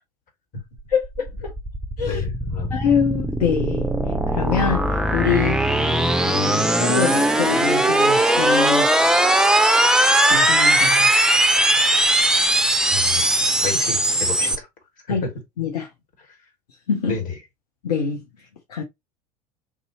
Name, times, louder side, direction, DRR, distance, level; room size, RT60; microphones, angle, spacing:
sound 1, 0.8-14.6, right 1 dB, 5° right, 0.5 m, -19 dB
voice 1, 0.9-1.5 2.0-2.2 2.7-3.9 4.3-5.6 6.2-8.9 10.3-11.1 15.1-15.3 15.6-15.9 16.9-17.2 17.8-18.2 18.7-18.8, left 6 dB, 70° left, 0.7 m, -24 dB
voice 2, 2.0-2.7 12.9-13.3 13.6-14.7 15.1-15.3 17.1-17.3, left 5 dB, 40° left, 1.7 m, -30 dB
4.0 x 2.7 x 2.8 m
figure-of-eight pair, 75°, 21 cm